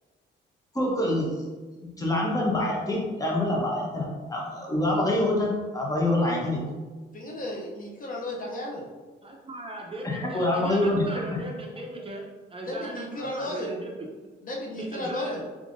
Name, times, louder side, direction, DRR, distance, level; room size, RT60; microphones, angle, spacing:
voice 1, 0.7-1.4 2.0-6.6 10.0-11.2, left 1 dB, 15° left, -2 dB, 1.0 m, -26 dB
voice 2, 7.1-8.8 12.6-13.7 14.4-15.4, left 1 dB, 45° left, -1 dB, 0.7 m, -34 dB
voice 3, 9.2-14.1 14.8-15.4, right 1 dB, 30° right, 0 dB, 0.6 m, -38 dB
3.5 x 3.4 x 2.6 m, 1.3 s
cardioid pair, 90°, 20 cm